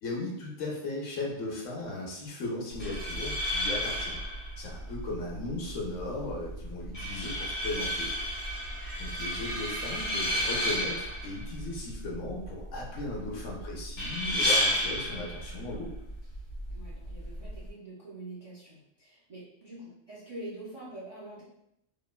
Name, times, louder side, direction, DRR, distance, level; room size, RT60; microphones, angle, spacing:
voice 1, 0.0-4.2 4.6-8.1 9.0-15.9, left 2 dB, 80° left, -1 dB, 1.0 m, -37 dB
sound 1, 2.7-17.7, equal, 45° left, 0.8 m, -33 dB
voice 2, 16.7-21.4, right 1 dB, 45° right, -7 dB, 0.4 m, -45 dB
3.0 x 2.1 x 2.2 m, 0.80 s
omnidirectional pair, 1.3 m